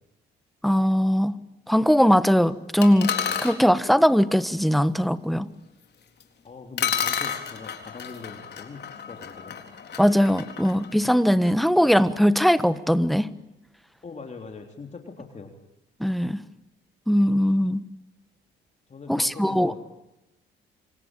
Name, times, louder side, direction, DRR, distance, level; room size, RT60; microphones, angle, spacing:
voice 1, 0.6-1.4 1.7-5.5 10.0-13.3 16.0-16.4 17.1-17.8 19.1-19.7, equal, ahead, 1.4 m, -20 dB
sound 1, 2.8-3.6 6.2-6.3 6.8-11.6, left 8 dB, 55° left, 4.0 m, -31 dB
voice 2, 6.4-9.6 14.0-15.5 18.9-19.8, left 4 dB, 35° left, 3.6 m, -41 dB
27.0 x 24.0 x 9.2 m
cardioid pair, 90°, 20 cm